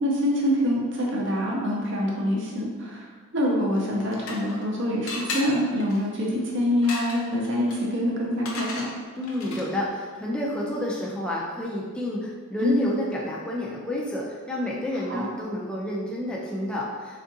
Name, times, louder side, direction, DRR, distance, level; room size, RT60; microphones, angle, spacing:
voice 1, 0.0-8.9 12.6-12.9 15.1-15.3, equal, 55° right, -3 dB, 0.6 m, -25 dB
sound 1, 3.8-4.7 5.1-9.9, left 3 dB, 70° left, 0.5 m, -37 dB
voice 2, 9.2-17.2, left 1 dB, 5° left, -5 dB, 0.3 m, -30 dB
3.5 x 2.4 x 2.6 m, 1.5 s
head